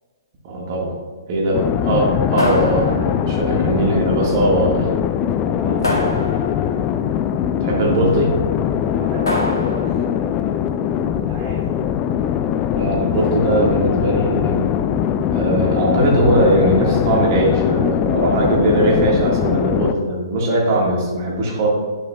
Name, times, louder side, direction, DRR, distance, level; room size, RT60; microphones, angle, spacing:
voice 1, 0.4-1.0 1.3-4.9 7.6-8.3 12.7-14.7 15.3-21.7, right 1 dB, 45° right, -2 dB, 1.7 m, -19 dB
sound 1, 1.5-19.9, left 9 dB, 30° left, 0.4 m, -21 dB
sound 2, 2.4-3.4 5.8-6.8 9.3-10.1, left 1 dB, 90° left, 1.8 m, -25 dB
voice 2, 3.5-3.8 5.5-6.9 8.9-10.6 11.2-12.3, right 1 dB, 15° right, -7 dB, 1.7 m, -35 dB
9.6 x 7.1 x 2.3 m, 1.5 s
hypercardioid pair, 125°, 2 cm